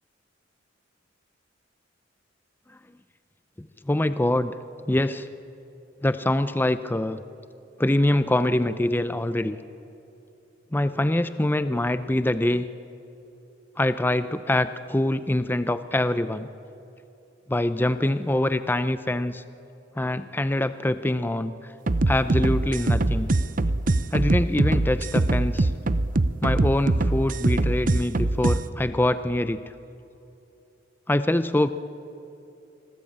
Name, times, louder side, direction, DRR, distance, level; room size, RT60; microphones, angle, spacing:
voice 1, 3.6-4.5 4.9-5.3 6.0-7.2 7.8-9.6 10.7-12.7 13.8-16.5 17.5-19.4 20.0-21.7 22.1-23.3 24.1-25.7 26.4-29.6 31.1-31.7, left 1 dB, 10° left, 12 dB, 0.5 m, -24 dB
sound 1, 21.9-28.6, right 2 dB, 45° right, 0.7 m, -23 dB
26.0 x 19.0 x 8.7 m, 2.9 s
head